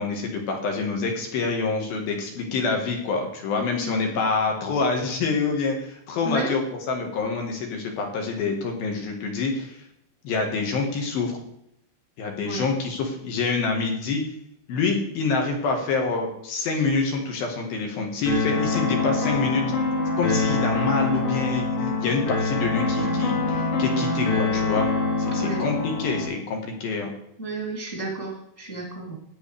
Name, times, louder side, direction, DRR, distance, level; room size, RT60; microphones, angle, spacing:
voice 1, 0.0-6.6 6.9-9.8 10.2-11.4 12.2-14.2 14.7-19.6 20.2-24.9 25.2-27.1, left 4 dB, 65° left, 2 dB, 2.8 m, -26 dB
sound 1, 18.3-26.3, left 3 dB, 80° left, 4.9 m, -25 dB
voice 2, 27.4-29.2, right 2 dB, 5° left, -3 dB, 1.5 m, -32 dB
13.5 x 9.3 x 3.3 m, 0.76 s
omnidirectional pair, 5.6 m